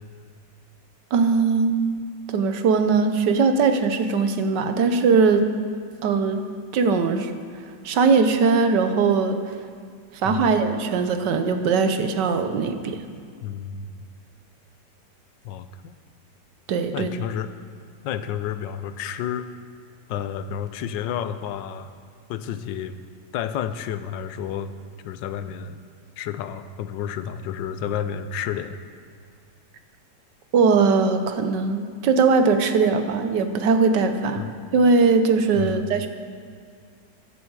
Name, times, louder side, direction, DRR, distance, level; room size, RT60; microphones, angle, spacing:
voice 1, 1.1-2.0 2.3-5.5 6.0-6.4 6.7-7.3 7.8-9.4 10.2-13.0 16.7-17.1 30.5-34.4 34.7-36.1, right 4 dB, 75° right, 8 dB, 1.5 m, -20 dB
voice 2, 13.4-14.0 15.4-15.9 16.9-17.5 18.0-19.5 20.1-21.9 22.3-22.9 23.3-24.7 25.0-25.8 26.2-28.8 34.4-34.5 35.5-35.8, left 9 dB, 85° left, 12 dB, 1.3 m, -30 dB
14.5 x 11.0 x 4.7 m, 2.2 s
omnidirectional pair, 2.0 m